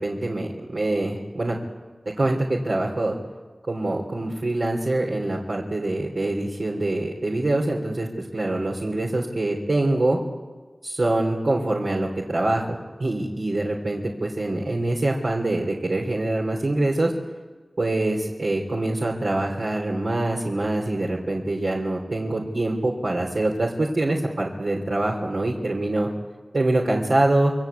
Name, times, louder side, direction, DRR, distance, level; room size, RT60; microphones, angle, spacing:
voice 1, 0.0-1.6 2.2-3.1 3.7-10.2 10.8-17.1 17.8-26.1 26.5-27.5, right 2 dB, 75° right, -3 dB, 3.4 m, -24 dB
28.0 x 22.5 x 8.3 m, 1.3 s
wide cardioid pair, 40°, 0 cm